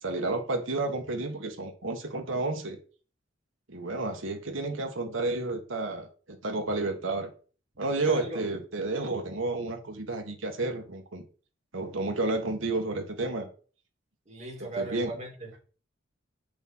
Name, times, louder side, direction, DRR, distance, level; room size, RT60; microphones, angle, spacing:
voice 1, 0.0-2.8 3.7-7.3 7.8-11.2 11.7-13.5 14.8-15.1, right 2 dB, 85° right, 1.6 m, -31 dB
voice 2, 8.1-8.5 14.3-15.6, right 2 dB, 35° right, 2.7 m, -37 dB
6.8 x 3.8 x 6.0 m
head